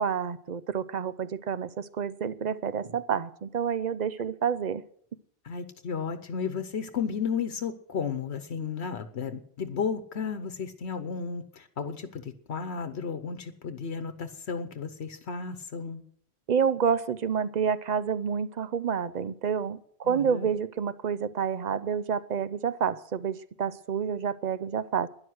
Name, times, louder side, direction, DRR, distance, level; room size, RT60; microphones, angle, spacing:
voice 1, 0.0-4.8 16.5-25.1, right 7 dB, 50° right, 0.7 m, -29 dB
voice 2, 5.4-16.0 20.0-20.5, left 6 dB, 80° left, 1.2 m, -33 dB
12.5 x 11.0 x 7.9 m
omnidirectional pair, 1.1 m